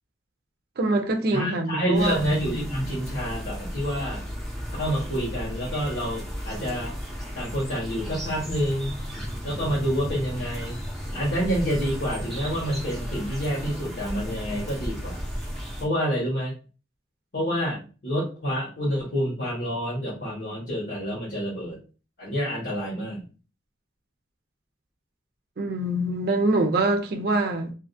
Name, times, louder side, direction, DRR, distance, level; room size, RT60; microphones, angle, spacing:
voice 1, 0.8-2.6 25.6-27.7, right 2 dB, 55° right, 0.4 m, -25 dB
voice 2, 1.3-4.2 4.8-6.9 7.3-9.0 9.4-10.8 11.1-15.2 15.8-16.5 17.3-21.8 22.2-23.3, equal, 65° left, 1.2 m, -28 dB
sound 1, 1.9-15.9, equal, ahead, 0.6 m, -34 dB
2.5 x 2.4 x 2.5 m
head